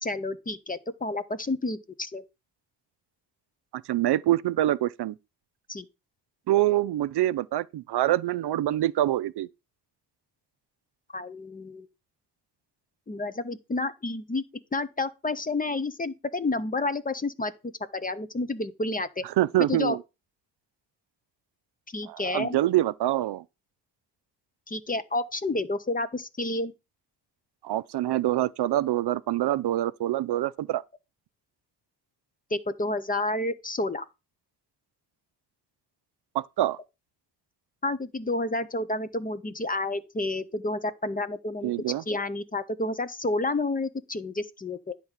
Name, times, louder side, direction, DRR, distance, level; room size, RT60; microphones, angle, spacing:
voice 1, 0.0-2.2 5.7-5.9 11.1-11.9 13.1-14.4 14.7-17.5 17.9-19.2 19.7-20.0 21.9-22.6 24.7-26.7 32.5-34.0 37.8-41.7 42.1-44.9, left 2 dB, 20° left, 0.5 m, -30 dB
voice 2, 3.7-5.2 6.5-9.5 19.4-20.0 22.1-23.4 27.6-30.8 36.3-36.8 41.6-42.0, right 14 dB, 65° right, 0.5 m, -25 dB
10.5 x 3.6 x 7.3 m
wide cardioid pair, 160°, 43 cm